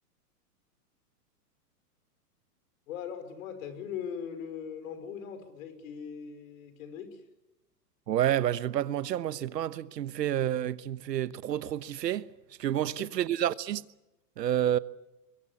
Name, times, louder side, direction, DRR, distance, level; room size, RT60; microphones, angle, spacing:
voice 1, 2.9-7.2 12.8-13.2, left 7 dB, 55° left, 5.6 m, -40 dB
voice 2, 8.1-12.3 12.6-13.8 14.4-14.8, right 11 dB, 80° right, 1.2 m, -29 dB
25.5 x 21.5 x 8.5 m
hypercardioid pair, 145°, 48 cm